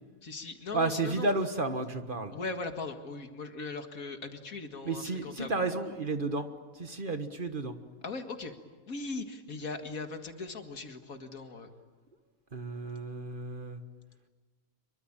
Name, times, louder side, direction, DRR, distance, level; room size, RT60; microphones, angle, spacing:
voice 1, 0.2-1.3 2.3-5.6 8.0-8.5 8.9-11.7, left 3 dB, 80° left, 6 dB, 2.4 m, -39 dB
voice 2, 0.7-2.3 4.9-6.5 6.8-7.8 12.5-13.8, right 2 dB, 40° right, 8 dB, 1.6 m, -32 dB
26.5 x 23.5 x 8.9 m, 1.4 s
omnidirectional pair, 1.5 m